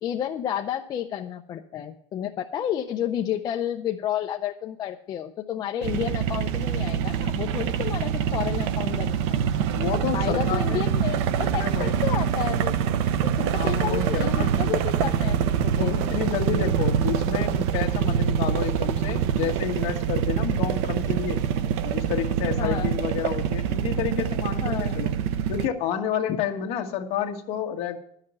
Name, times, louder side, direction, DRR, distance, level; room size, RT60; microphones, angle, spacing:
voice 1, 0.0-9.2 10.1-12.7 13.2-16.0 22.6-23.0 24.6-24.9, left 10 dB, 30° left, 3 dB, 0.5 m, -31 dB
sound 1, 5.8-25.7, right 8 dB, 85° right, 0.7 m, -25 dB
voice 2, 9.7-10.9 11.4-12.0 13.5-14.5 15.8-21.4 21.8-25.1 25.5-28.0, left 9 dB, 45° left, 4 dB, 1.4 m, -30 dB
11.5 x 5.7 x 8.0 m, 0.68 s
cardioid pair, 175°, 14 cm